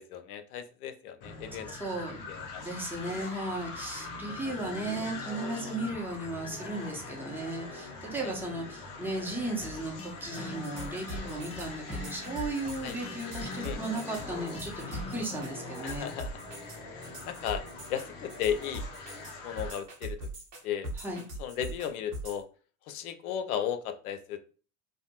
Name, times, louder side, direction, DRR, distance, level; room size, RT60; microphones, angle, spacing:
voice 1, 0.0-1.7 2.1-2.6 3.0-3.3 8.2-8.3 9.4-9.5 12.8-13.0 13.6-14.1 15.8-16.4 17.2-18.9 19.4-20.3 20.6-20.9 21.4-22.5 22.9-24.4, left 9 dB, 80° left, 9 dB, 0.5 m, -35 dB
sound 1, 1.2-19.8, left 3 dB, 50° left, 0.7 m, -43 dB
voice 2, 1.8-2.2 2.6-16.1 21.0-21.2, right 2 dB, 5° right, -2 dB, 0.9 m, -36 dB
sound 2, 9.6-15.6, left 3 dB, 15° left, 0.6 m, -44 dB
sound 3, 10.3-22.4, right 1 dB, 90° right, 1.0 m, -41 dB
2.5 x 2.1 x 2.8 m, 0.38 s
hypercardioid pair, 75°, 44 cm